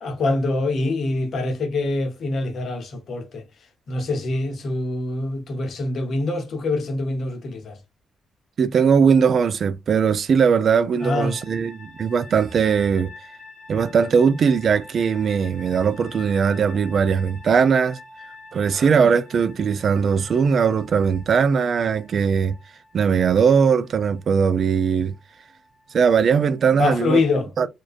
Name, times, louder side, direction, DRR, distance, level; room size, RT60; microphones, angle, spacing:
voice 1, 0.0-3.4 3.9-7.8 11.0-11.3 26.8-27.5, left 2 dB, 65° left, 0.7 m, -24 dB
voice 2, 8.6-13.1 13.7-18.0 18.5-22.5 22.9-25.1 25.9-27.2 27.6-27.7, right 6 dB, 60° right, 0.3 m, -19 dB
sound 1, 11.0-26.8, left 3 dB, 5° right, 1.2 m, -46 dB
2.4 x 2.2 x 2.4 m
cardioid pair, 75°, 0 cm